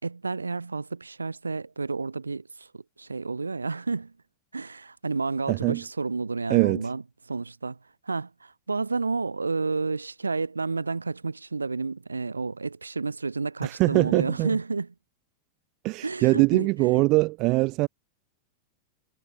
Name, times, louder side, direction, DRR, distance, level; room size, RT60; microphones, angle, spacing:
voice 1, 0.0-4.1 4.5-7.0 7.3-7.8 8.0-14.9 16.0-17.0, right 4 dB, 80° right, 4.6 m, -30 dB
voice 2, 5.5-5.8 6.5-6.8 13.6-14.6 15.8-17.9, right 22 dB, 40° right, 1.0 m, -22 dB
figure-of-eight pair, 90°, 0 cm